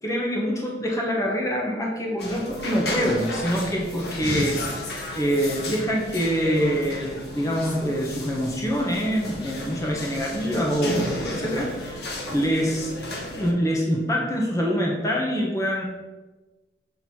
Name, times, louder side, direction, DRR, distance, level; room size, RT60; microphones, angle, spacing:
voice 1, 0.0-12.9 13.3-15.8, equal, 20° left, -2 dB, 1.0 m, -25 dB
sound 1, 2.2-13.5, left 1 dB, 65° left, 1.2 m, -33 dB
7.2 x 3.8 x 4.5 m, 1.2 s
head